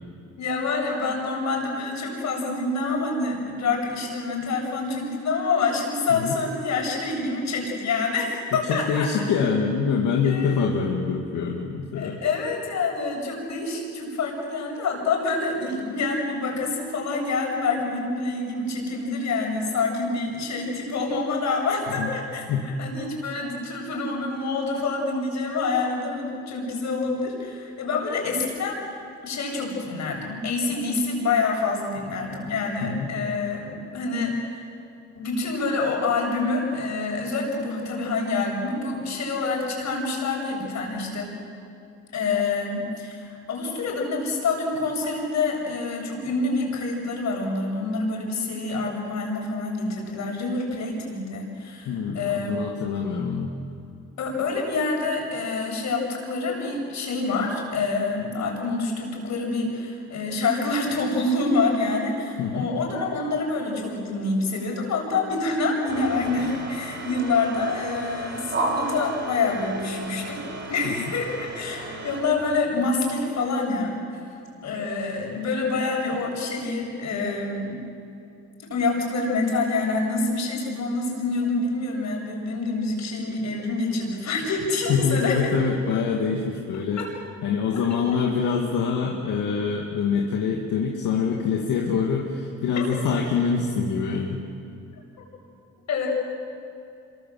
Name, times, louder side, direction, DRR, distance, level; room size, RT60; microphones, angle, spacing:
voice 1, 0.4-9.1 10.2-10.6 11.9-28.8 29.2-34.6 35.1-41.3 42.1-52.8 54.2-70.4 70.7-74.0 74.6-77.8 78.7-85.5 87.0-87.1 87.7-88.2 92.8-93.1 95.9-96.1, left 3 dB, 65° left, 0 dB, 7.7 m, -27 dB
voice 2, 8.7-12.2 22.0-22.1 22.5-22.7 32.8-33.1 51.9-53.5 62.4-62.7 70.8-71.1 84.9-87.0 87.4-94.4, left 5 dB, 85° left, -1 dB, 2.5 m, -25 dB
sound 1, 65.9-72.2, right 2 dB, 35° right, 5.6 m, -33 dB
27.0 x 23.5 x 7.8 m, 2.7 s
cardioid pair, 90°, 30 cm